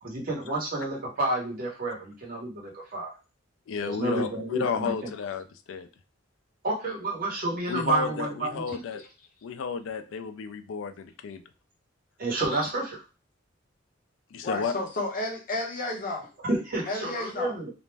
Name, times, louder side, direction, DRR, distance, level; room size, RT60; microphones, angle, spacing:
voice 1, 0.0-3.1 3.8-5.1 6.6-8.8 12.2-13.0 16.4-17.7, right 2 dB, 50° right, -2 dB, 1.0 m, -30 dB
voice 2, 3.7-5.9 7.7-9.0 9.4-11.4 12.6-12.7 14.3-14.7, left 5 dB, 80° left, 9 dB, 0.4 m, -32 dB
voice 3, 14.4-16.3 16.9-17.5, left 2 dB, 45° left, 0 dB, 0.7 m, -32 dB
2.4 x 2.1 x 3.2 m, 0.33 s
head